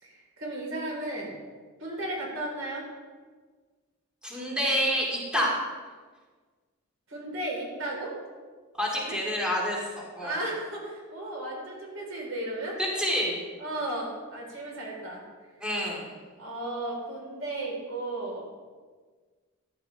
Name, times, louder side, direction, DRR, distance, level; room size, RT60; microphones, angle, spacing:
voice 1, 0.0-1.3 1.8-2.9 7.1-8.2 9.1-9.2 10.2-12.8 13.6-15.2 16.4-18.4, right 1 dB, 75° right, -2 dB, 4.1 m, -34 dB
voice 2, 4.2-5.5 8.8-10.4 12.8-13.4 15.6-16.1, equal, 5° right, -4 dB, 2.3 m, -28 dB
14.0 x 10.5 x 3.4 m, 1.5 s
head